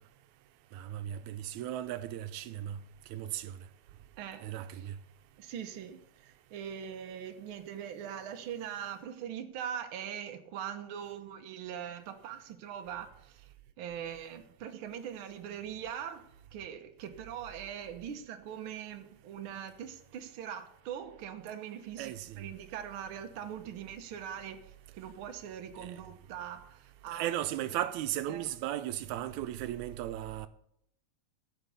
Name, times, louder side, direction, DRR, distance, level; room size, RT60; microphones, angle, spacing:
voice 1, 0.7-2.8 3.1-3.5 4.4-4.9 22.0-22.4 25.8-26.0 27.1-30.5, right 12 dB, 90° right, 2.1 m, -36 dB
voice 2, 4.2-4.5 4.8-4.9 5.4-13.5 13.8-16.3 16.5-27.3 28.3-28.5, right 9 dB, 60° right, 1.6 m, -42 dB
15.0 x 6.0 x 6.8 m
omnidirectional pair, 3.3 m